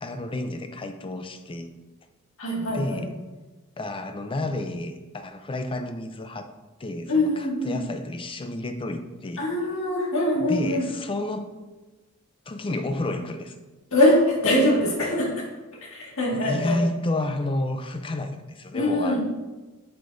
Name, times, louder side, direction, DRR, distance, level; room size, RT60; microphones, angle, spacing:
voice 1, 0.0-1.7 2.7-3.1 3.8-6.5 6.8-9.5 10.4-11.5 12.5-13.6 16.3-19.2, left 1 dB, 25° left, 8 dB, 0.5 m, -30 dB
voice 2, 2.4-3.0 7.1-7.8 9.4-10.9 13.9-15.4 15.9-16.8 18.7-19.2, left 1 dB, 65° left, -3 dB, 1.9 m, -23 dB
8.1 x 6.7 x 2.6 m, 1.2 s
head